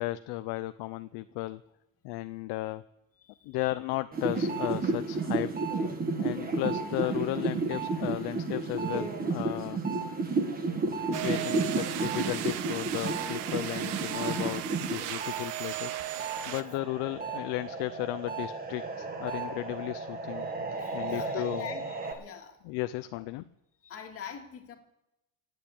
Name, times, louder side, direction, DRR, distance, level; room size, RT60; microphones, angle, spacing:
voice 1, 0.0-1.6 2.0-2.8 3.4-5.5 6.2-9.8 11.2-20.5 20.9-21.7 22.6-23.4, left 18 dB, 60° left, 11 dB, 0.6 m, -35 dB
voice 2, 3.2-3.5 11.6-12.1 18.9-19.0 20.3-22.6 23.1-23.2 23.8-24.8, left 7 dB, 30° left, 3 dB, 2.1 m, -45 dB
sound 1, 4.1-15.4 15.8-22.1, right 3 dB, 20° right, 1.5 m, -32 dB
sound 2, 11.1-16.6, right 13 dB, 60° right, 1.1 m, -36 dB
17.5 x 8.1 x 8.5 m, 0.89 s
cardioid pair, 170°, 46 cm